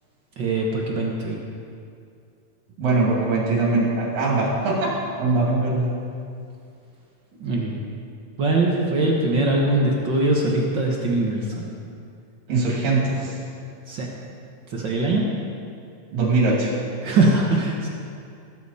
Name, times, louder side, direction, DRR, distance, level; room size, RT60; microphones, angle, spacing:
voice 1, 0.4-1.4 7.4-7.7 8.4-11.7 13.9-14.1 14.7-15.3 17.0-17.9, right 2 dB, 55° right, -2 dB, 1.2 m, -22 dB
voice 2, 2.8-4.9 5.2-5.9 12.5-13.4 16.1-16.7, right 3 dB, 85° right, -4 dB, 4.1 m, -21 dB
19.0 x 9.0 x 4.2 m, 2.4 s
omnidirectional pair, 3.8 m